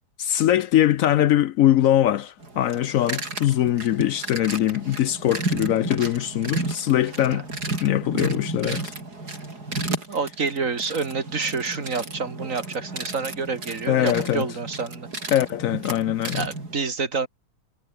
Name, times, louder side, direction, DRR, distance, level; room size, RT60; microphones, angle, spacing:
voice 1, 0.2-7.5 7.8-8.9 13.9-14.5 15.3-16.5, left 12 dB, 70° left, 0.9 m, -22 dB
sound 1, 2.4-16.7, right 2 dB, 85° right, 5.8 m, -33 dB
voice 2, 10.1-15.1 16.3-17.3, right 4 dB, 55° right, 2.5 m, -28 dB
omnidirectional pair, 1.7 m